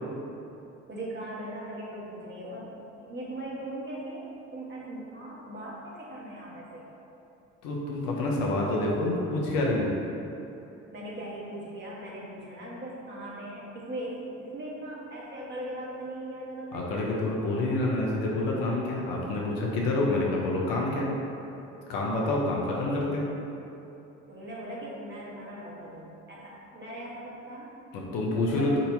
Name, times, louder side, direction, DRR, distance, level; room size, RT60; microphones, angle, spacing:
voice 1, 0.9-2.7 3.0-4.2 4.5-6.9 10.9-16.8 22.9-23.1 24.3-27.8 28.5-28.8, right 1 dB, 30° right, -6 dB, 1.2 m, -39 dB
voice 2, 7.6-9.9 16.7-21.1 21.9-23.3 27.9-28.8, left 2 dB, 65° left, -3 dB, 0.8 m, -27 dB
4.0 x 2.7 x 3.9 m, 2.9 s
hypercardioid pair, 55°, 37 cm